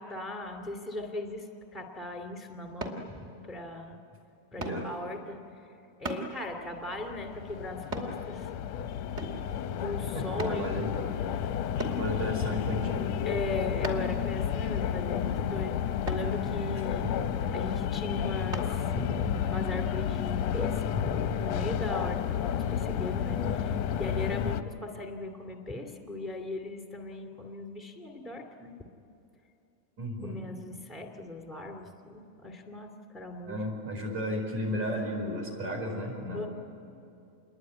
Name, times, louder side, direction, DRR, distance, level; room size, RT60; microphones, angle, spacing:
voice 1, 0.0-1.5 1.7-4.0 4.5-5.4 6.0-8.5 9.8-10.9 13.2-17.1 17.5-23.7 24.0-28.7 30.2-33.6 36.3-36.5, left 2 dB, ahead, 3 dB, 1.8 m, -38 dB
sound 1, 2.8-3.0 4.6-4.8 6.0-6.3 7.9-8.1 9.2-9.5 10.4-10.6 11.8-12.0 13.8-14.2 16.1-16.3 18.5-18.7 19.3-19.4, right 1 dB, 20° right, 2.7 m, -35 dB
voice 2, 4.5-4.9 10.1-10.9 11.3-11.5 11.9-13.1 17.0-17.1 23.4-23.8 24.4-24.5 30.0-30.5 31.9-32.0 33.5-36.5, equal, 60° right, 1 dB, 6.2 m, -34 dB
sound 2, 6.7-24.6, left 9 dB, 70° left, 1.7 m, -31 dB
28.0 x 22.0 x 9.7 m, 2.7 s
omnidirectional pair, 3.6 m